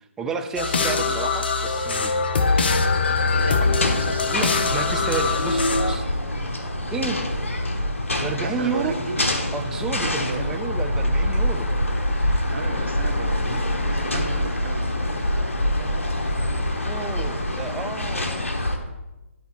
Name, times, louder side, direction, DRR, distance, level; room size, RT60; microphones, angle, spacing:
voice 1, 0.2-2.2 4.2-6.0 6.9-7.2 8.2-9.0 9.5-11.7 16.8-18.4, right 5 dB, 5° right, 5 dB, 0.4 m, -31 dB
sound 1, 0.6-6.0, left 4 dB, 45° left, 0.7 m, -22 dB
voice 2, 0.8-1.2 3.2-5.1 8.4-9.2 9.9-10.5 12.5-15.0, right 4 dB, 55° right, 5 dB, 1.3 m, -34 dB
sound 2, 2.4-18.8, left 1 dB, 65° left, 1.3 m, -25 dB
12.0 x 4.4 x 4.6 m, 1.0 s
figure-of-eight pair, 145°, 8 cm